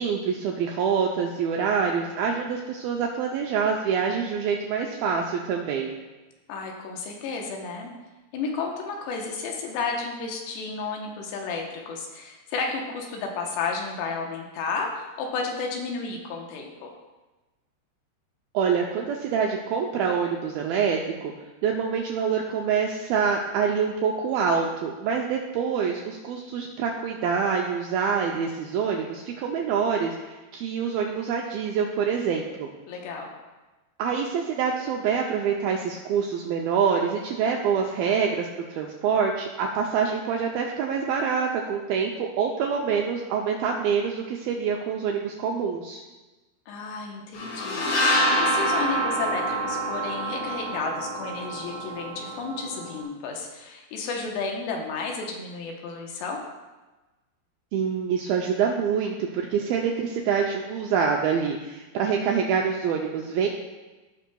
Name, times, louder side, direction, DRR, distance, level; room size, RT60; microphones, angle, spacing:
voice 1, 0.0-5.9 18.5-21.3 21.6-32.7 34.0-46.0 57.7-63.5, right 6 dB, 85° right, 0 dB, 2.1 m, -26 dB
voice 2, 6.5-7.9 8.3-16.9 32.9-33.3 46.7-47.9 48.4-56.4, left 4 dB, 80° left, 1 dB, 3.1 m, -32 dB
sound 1, 47.3-53.0, equal, 60° left, 1.8 m, -27 dB
16.0 x 5.9 x 2.3 m, 1.2 s
omnidirectional pair, 4.9 m